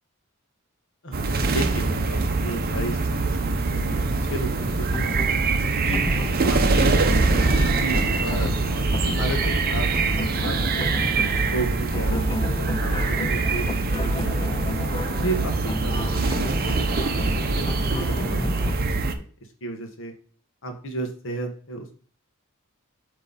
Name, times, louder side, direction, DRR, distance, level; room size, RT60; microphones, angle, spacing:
voice 1, 1.0-4.0 4.3-5.5 5.8-6.0 6.5-10.9 11.3-14.8 15.2-17.2 17.5-17.6 18.0-19.2 19.6-20.1 20.6-21.9, right 1 dB, 65° left, 4 dB, 1.4 m, -34 dB
sound 1, 1.1-19.1, right 3 dB, 45° right, 0.6 m, -23 dB
sound 2, 4.8-18.7, left 2 dB, 25° left, 0.3 m, -33 dB
7.7 x 3.2 x 4.0 m, 0.43 s
head